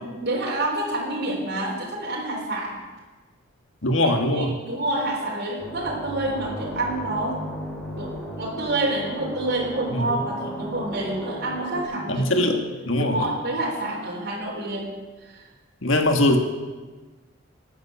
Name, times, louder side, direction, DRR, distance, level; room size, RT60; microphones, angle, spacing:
voice 1, 0.0-2.8 4.2-7.4 8.0-12.4 13.0-14.9 15.2-15.5, right 2 dB, 50° right, -3 dB, 3.8 m, -28 dB
voice 2, 3.8-4.5 9.9-10.2 12.1-12.6 12.9-13.2 15.8-16.4, left 1 dB, 65° left, 4 dB, 1.8 m, -21 dB
sound 1, 5.6-11.8, right 1 dB, 10° left, 4.6 m, -35 dB
19.0 x 9.4 x 7.1 m, 1.3 s
head